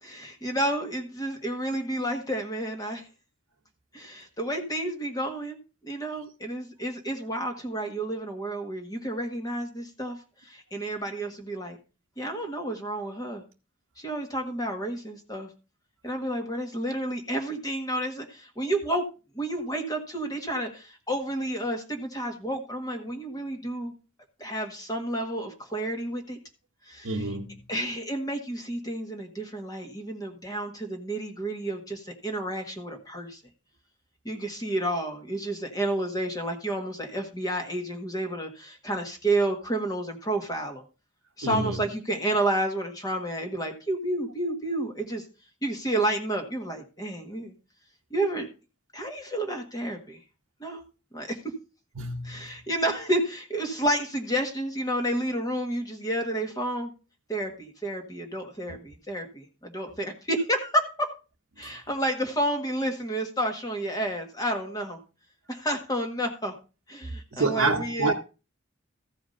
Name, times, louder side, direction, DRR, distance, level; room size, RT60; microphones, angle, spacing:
voice 1, 0.0-3.1 3.9-5.6 5.8-10.2 10.4-11.8 12.2-13.4 14.0-15.5 16.0-19.0 19.3-23.9 24.4-26.4 26.8-27.3 27.7-33.4 34.2-40.8 41.4-45.2 45.6-47.5 48.1-48.5 48.9-50.2 50.6-50.8 51.1-51.4 52.2-56.9 57.3-61.1 61.6-65.0 65.5-66.5 66.9-68.1, right 1 dB, 20° left, 1.6 m, -30 dB
voice 2, 27.0-27.6 41.4-41.8 52.0-52.5 58.7-58.8 61.6-61.7 67.3-68.1, right 3 dB, 90° right, 0.9 m, -28 dB
14.5 x 5.0 x 5.3 m
head